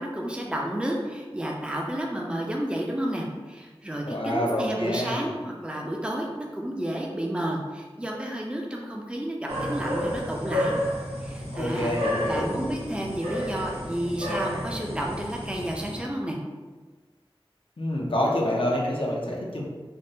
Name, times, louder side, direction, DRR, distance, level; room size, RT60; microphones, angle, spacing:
voice 1, 0.0-10.8 11.2-11.9 12.3-16.4, right 1 dB, 10° right, -1 dB, 0.5 m, -31 dB
voice 2, 4.0-5.3 11.5-12.5 17.8-19.6, left 1 dB, 65° left, -3 dB, 0.6 m, -27 dB
sound 1, 9.5-16.0, equal, 90° right, 0.6 m, -31 dB
3.4 x 2.0 x 2.6 m, 1.3 s
wide cardioid pair, 45°, 10 cm